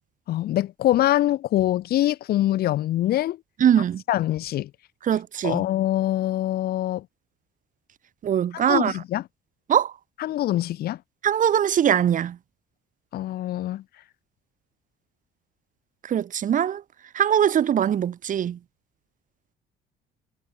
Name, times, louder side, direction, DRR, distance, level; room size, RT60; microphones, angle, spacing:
voice 1, 0.3-3.4 4.1-4.7 5.4-7.0 8.7-9.2 10.2-11.0 13.1-13.8, left 14 dB, 65° left, 1.3 m, -24 dB
voice 2, 3.6-4.0 5.0-5.7 8.2-8.9 9.7-9.9 11.2-12.4 16.1-16.8 17.1-18.6, right 9 dB, 50° right, 3.3 m, -21 dB
cardioid pair, 110°, 17 cm